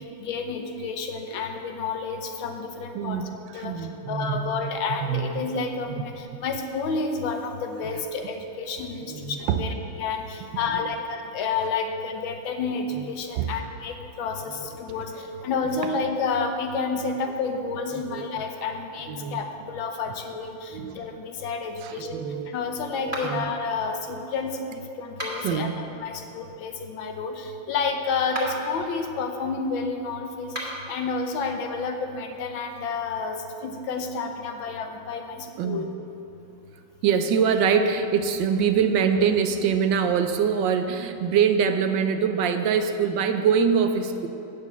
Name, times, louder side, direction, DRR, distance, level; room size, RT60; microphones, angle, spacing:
voice 1, 0.0-3.2 3.5-35.9, left 4 dB, 90° left, 5 dB, 1.6 m, -30 dB
voice 2, 3.5-4.7 5.0-5.3 9.0-9.6 13.3-13.5 17.9-18.3 19.1-19.4 20.7-21.0 21.8-22.5 23.0-23.5 25.4-25.8 35.6-35.9 37.0-44.3, right 6 dB, 75° right, 7 dB, 1.2 m, -24 dB
sound 1, 23.1-23.6 25.0-25.6 28.2-28.7 30.4-30.9, right 1 dB, 20° right, 2.0 m, -34 dB
9.1 x 7.2 x 6.9 m, 2.8 s
omnidirectional pair, 2.1 m